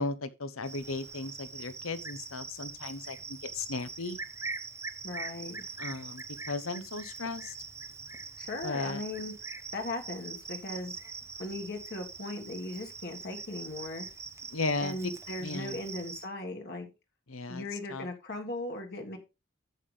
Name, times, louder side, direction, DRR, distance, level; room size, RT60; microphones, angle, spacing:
voice 1, 0.0-4.2 5.8-7.5 8.6-9.0 14.5-15.1 15.4-15.8 17.3-17.6 17.9-18.1, left 3 dB, 75° left, 1.0 m, -35 dB
Cricket, 0.6-16.3, right 4 dB, 15° right, 0.6 m, -43 dB
voice 2, 5.0-5.6 8.4-9.3 9.7-10.9 11.4-14.1 14.8-16.9 17.5-19.2, left 2 dB, 50° left, 1.7 m, -38 dB
10.5 x 7.8 x 3.3 m
head